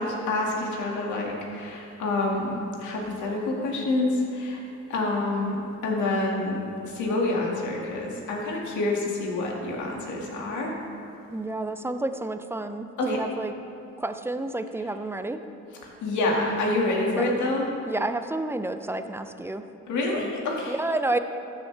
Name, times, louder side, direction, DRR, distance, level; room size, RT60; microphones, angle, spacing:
voice 1, 0.0-4.6 4.9-5.6 5.8-6.6 6.8-10.7 13.0-13.2 16.0-17.7 19.9-20.7, left 2 dB, 75° left, -2 dB, 2.0 m, -27 dB
voice 2, 11.3-13.5 14.0-15.4 17.2-17.4 17.9-19.6 20.1-20.3 20.7-21.2, right 2 dB, 10° right, 9 dB, 0.5 m, -30 dB
13.5 x 7.3 x 3.3 m, 2.9 s
cardioid pair, 90°, 30 cm